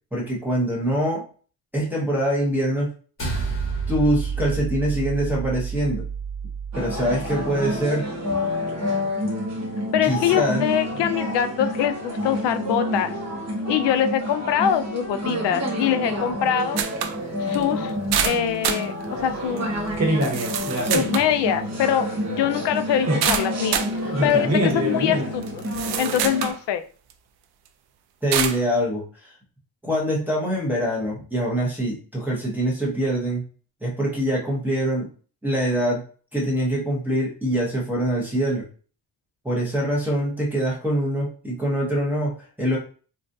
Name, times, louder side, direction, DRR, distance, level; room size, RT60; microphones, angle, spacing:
voice 1, 0.1-1.3 1.7-2.9 3.9-6.0 6.7-8.1 10.0-10.6 28.2-29.3 29.8-33.4 33.8-35.1 35.4-36.0 36.3-38.6 39.4-42.8, equal, 5° right, -5 dB, 0.8 m, -24 dB
sound 1, 3.2-7.8, right 5 dB, 30° left, 1.0 m, -29 dB
sound 2, 6.7-26.5, equal, 35° right, 1.1 m, -27 dB
voice 2, 9.9-13.1 13.7-16.8 17.4-17.9 18.2-19.7 20.9-23.9 24.2-25.6 26.0-26.8, left 9 dB, 70° left, 10 dB, 0.5 m, -23 dB
sound 3, 16.8-17.2 17.5-17.6 18.1-18.9 19.6-19.7 20.2-21.3 23.2-23.9 24.7-24.8 25.4-26.6 27.1-27.2 28.3-28.6, right 9 dB, 60° right, 0.5 m, -26 dB
3.7 x 2.4 x 2.6 m, 0.40 s
cardioid pair, 165°, 44 cm